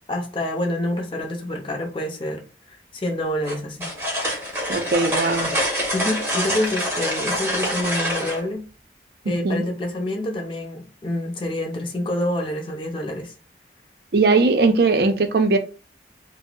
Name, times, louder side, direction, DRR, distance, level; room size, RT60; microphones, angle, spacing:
voice 1, 0.0-2.4 2.7-3.9 5.9-8.7 9.2-13.3, left 1 dB, 30° left, 2 dB, 0.6 m, -27 dB
sound 1, 3.4-8.4, equal, 15° right, 0.7 m, -25 dB
voice 2, 4.7-5.5 9.4-9.6 14.1-15.6, right 3 dB, 55° right, 7 dB, 0.5 m, -19 dB
2.6 x 2.0 x 3.8 m, 0.36 s
head